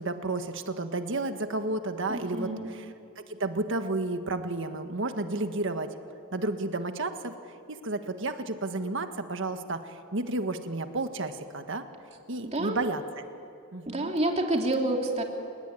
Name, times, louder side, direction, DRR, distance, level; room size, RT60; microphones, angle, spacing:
voice 1, 0.0-2.9 3.2-5.9 6.3-7.3 7.7-11.8 12.3-13.0 13.7-14.1, right 2 dB, 65° right, 7 dB, 1.6 m, -32 dB
voice 2, 2.1-2.7 12.4-12.8 13.9-15.2, right 1 dB, 35° right, 2 dB, 3.1 m, -28 dB
29.5 x 18.0 x 10.0 m, 2.6 s
head